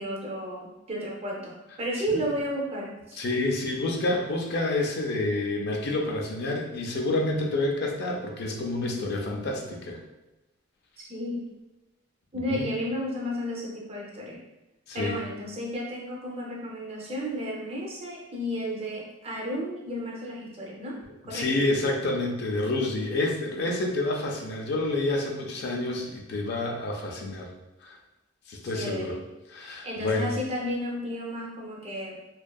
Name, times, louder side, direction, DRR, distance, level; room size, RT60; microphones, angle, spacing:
voice 1, 0.0-3.2 11.0-11.5 12.3-14.4 14.9-21.0 21.3-21.5 28.7-29.2 29.8-32.2, equal, 30° right, -1 dB, 0.4 m, -33 dB
voice 2, 3.1-10.0 12.5-12.7 14.9-15.2 21.3-27.5 27.8-28.0 28.5-29.2 29.5-30.3, left 2 dB, 50° left, 0 dB, 0.4 m, -28 dB
2.5 x 2.2 x 2.2 m, 1.0 s
head